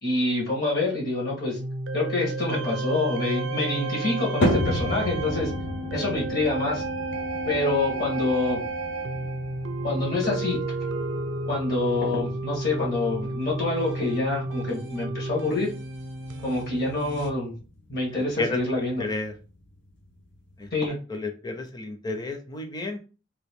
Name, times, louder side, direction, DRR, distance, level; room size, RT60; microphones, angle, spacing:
voice 1, 0.0-1.6 1.9-5.5 5.9-6.8 7.5-8.6 9.8-10.6 11.5-15.7 16.4-17.5 17.9-19.0 20.7-21.0, left 2 dB, 55° left, -3 dB, 1.3 m, -26 dB
sound 1, 1.6-17.3, right 2 dB, 70° right, 0.5 m, -32 dB
sound 2, 4.4-20.8, equal, 75° left, 0.9 m, -34 dB
voice 2, 18.1-18.6 19.0-19.3 20.6-20.7 21.1-23.0, left 2 dB, 20° left, 4 dB, 0.6 m, -31 dB
2.9 x 2.6 x 3.5 m, 0.34 s
head